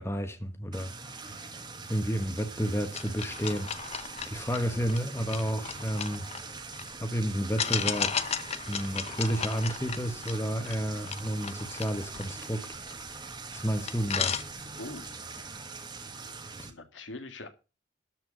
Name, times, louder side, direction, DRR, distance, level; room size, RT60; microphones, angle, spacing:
voice 1, 0.0-1.5 1.9-6.3 7.0-8.2 8.7-12.7 13.5-14.4 16.6-16.7, equal, 15° left, 1.2 m, -31 dB
sound 1, 0.7-16.7, right 4 dB, 25° right, 1.5 m, -43 dB
sound 2, 2.9-6.9 7.6-13.2 13.6-13.7 13.9-15.0, left 7 dB, 35° left, 0.8 m, -35 dB
voice 2, 16.6-17.5, left 2 dB, 85° left, 1.9 m, -42 dB
13.0 x 4.6 x 7.6 m
head